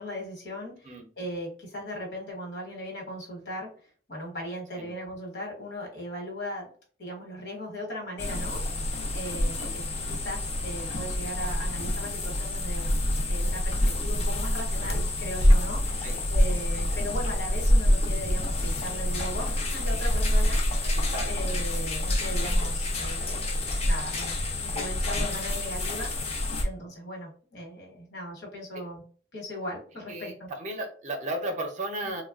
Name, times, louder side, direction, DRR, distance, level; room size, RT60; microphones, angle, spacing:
voice 1, 0.0-0.9 1.2-6.7 7.0-8.7 9.1-9.8 10.1-12.9 13.3-23.5 23.8-24.4 24.6-26.1 26.6-29.0 29.3-30.5 32.0-32.1, equal, 75° left, 0 dB, 1.1 m, -38 dB
sound 1, 8.2-26.6, left 1 dB, 35° left, 0.4 m, -27 dB
voice 2, 9.4-9.7 16.0-16.2 16.7-16.9 21.1-21.4 30.1-32.2, right 1 dB, 40° right, 4 dB, 0.5 m, -35 dB
3.0 x 2.2 x 2.4 m, 0.43 s
head